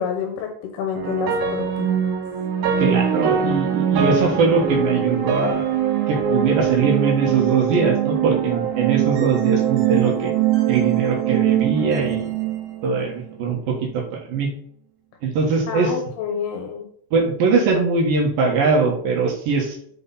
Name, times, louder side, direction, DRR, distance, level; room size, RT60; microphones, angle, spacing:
voice 1, 0.0-1.9 15.7-16.9, left 7 dB, 75° left, 3 dB, 2.6 m, -28 dB
sound 1, 1.0-13.2, right 9 dB, 85° right, 3.8 m, -22 dB
voice 2, 2.8-5.8 6.1-10.4 10.7-12.3 12.8-14.5 15.2-15.9 17.1-19.8, right 4 dB, 65° right, 0 dB, 2.7 m, -21 dB
7.7 x 4.8 x 4.1 m, 0.62 s
omnidirectional pair, 5.2 m